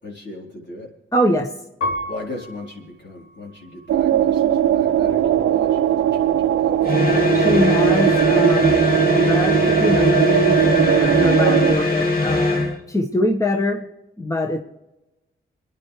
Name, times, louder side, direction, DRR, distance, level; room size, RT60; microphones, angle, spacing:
voice 1, 0.0-0.9 2.1-7.4, left 2 dB, 60° left, -2 dB, 4.4 m, -38 dB
voice 2, 1.1-1.5 7.3-8.9 9.3-13.9 14.2-14.6, left 1 dB, 15° left, 3 dB, 1.5 m, -23 dB
Piano, 1.8-4.6 5.2-5.9, left 1 dB, 80° left, 3.6 m, -33 dB
sound 1, 3.9-11.7, right 10 dB, 90° right, 0.7 m, -19 dB
sound 2, 6.8-12.8, left 2 dB, 45° left, 2.9 m, -20 dB
27.5 x 10.5 x 3.4 m, 1.0 s
supercardioid pair, 45°, 21 cm